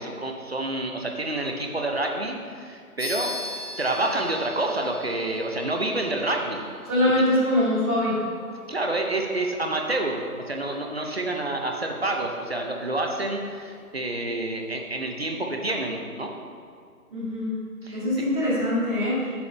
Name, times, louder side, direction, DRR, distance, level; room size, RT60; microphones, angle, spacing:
voice 1, 0.0-3.3 3.8-6.6 8.7-16.3 17.8-18.0, right 2 dB, 45° right, 2 dB, 0.7 m, -28 dB
sound 1, 3.0-12.9, left 1 dB, 10° left, 1.4 m, -42 dB
voice 2, 6.8-8.1 17.1-17.5 17.9-19.4, left 1 dB, 10° right, -21 dB, 1.3 m, -23 dB
8.3 x 7.0 x 3.4 m, 2.2 s
figure-of-eight pair, 165°, 45 cm